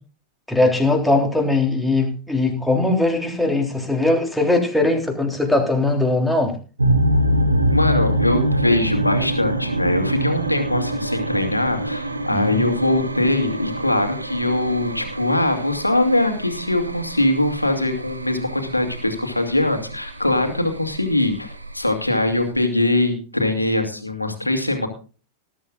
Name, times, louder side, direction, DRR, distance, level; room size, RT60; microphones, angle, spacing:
voice 1, 0.5-6.6 12.3-12.6, left 2 dB, ahead, 1 dB, 3.4 m, -20 dB
sound 1, 6.8-22.5, right 1 dB, 80° right, 1.4 m, -25 dB
voice 2, 7.7-24.9, left 1 dB, 85° left, 5 dB, 2.4 m, -22 dB
19.5 x 11.5 x 2.5 m, 0.35 s
figure-of-eight pair, 90°, 0 cm